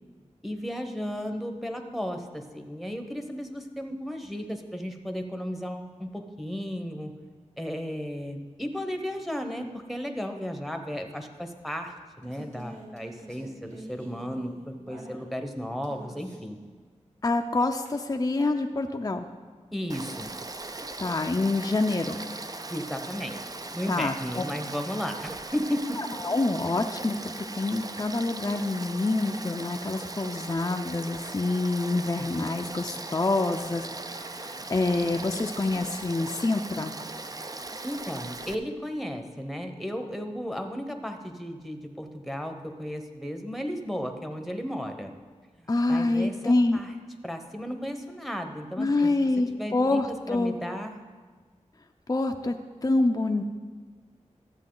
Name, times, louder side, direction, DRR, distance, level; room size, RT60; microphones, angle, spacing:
voice 1, 0.4-7.1 7.6-16.6 19.7-20.3 22.7-23.4 23.7-26.1 37.8-45.1 45.6-46.9 47.2-49.2 49.6-51.0, equal, ahead, 6 dB, 0.9 m, -34 dB
sound 1, 11.5-15.5 15.8-16.6 17.9-18.0, right 1 dB, 80° right, 1.9 m, -46 dB
voice 2, 17.2-19.3 21.0-22.2 23.9-24.1 26.0-36.9 45.7-46.8 48.8-50.6 52.1-52.5 52.8-53.4, left 2 dB, 30° left, 4 dB, 0.5 m, -26 dB
Frog / Stream, 19.9-38.5, right 2 dB, 30° right, 0.5 m, -39 dB
12.5 x 8.1 x 3.8 m, 1.5 s
wide cardioid pair, 70°, 12 cm